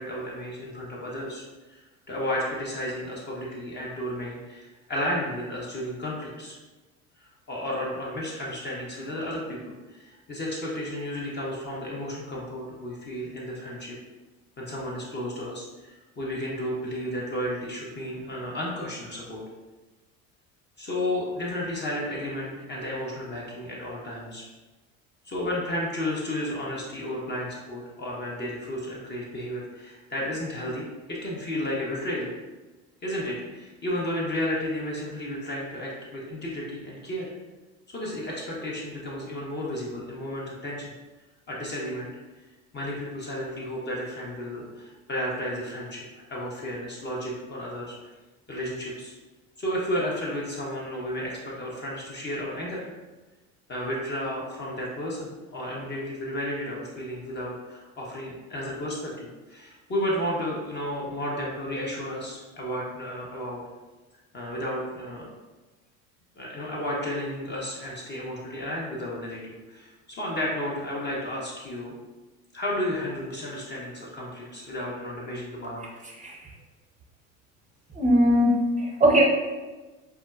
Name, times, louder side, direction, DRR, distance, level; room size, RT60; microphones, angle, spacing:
voice 1, 0.0-1.4 1.7-1.8 2.1-6.6 7.2-9.6 9.9-14.0 14.6-19.4 20.8-24.4 25.2-32.3 33.0-37.3 37.9-40.9 41.5-42.1 42.7-46.0 46.3-47.9 48.5-49.1 49.6-52.9 53.7-63.6 64.3-65.3 66.4-71.9 72.5-75.8, left 1 dB, 25° left, -4 dB, 0.7 m, -32 dB
voice 2, 78.0-79.2, equal, 15° right, -1 dB, 0.7 m, -20 dB
4.4 x 2.1 x 2.3 m, 1.2 s
hypercardioid pair, 75°, 42 cm